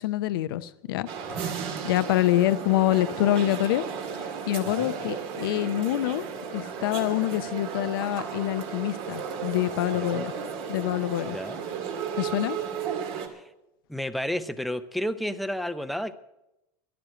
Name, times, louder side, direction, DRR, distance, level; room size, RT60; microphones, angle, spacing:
voice 1, 0.0-1.1 1.4-1.5 1.8-3.8 4.5-6.3 6.5-10.3 10.7-11.4 12.2-12.6, left 14 dB, 85° left, 13 dB, 0.7 m, -26 dB
sound 1, 1.1-13.3, right 7 dB, 55° right, 2.1 m, -34 dB
voice 2, 13.9-16.1, equal, ahead, 10 dB, 0.7 m, -32 dB
12.0 x 10.5 x 7.6 m, 0.91 s
supercardioid pair, 125°, 12 cm